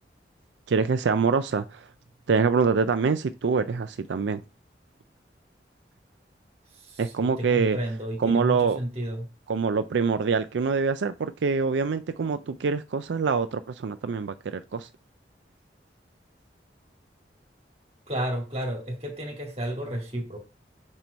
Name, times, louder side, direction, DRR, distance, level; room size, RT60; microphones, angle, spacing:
voice 1, 0.7-1.9 2.3-4.4 7.0-7.8 8.2-8.8 9.5-14.9, right 5 dB, 85° right, 0.4 m, -25 dB
voice 2, 6.8-9.3 18.1-20.4, right 1 dB, 35° right, 2.0 m, -32 dB
5.5 x 4.5 x 5.1 m
head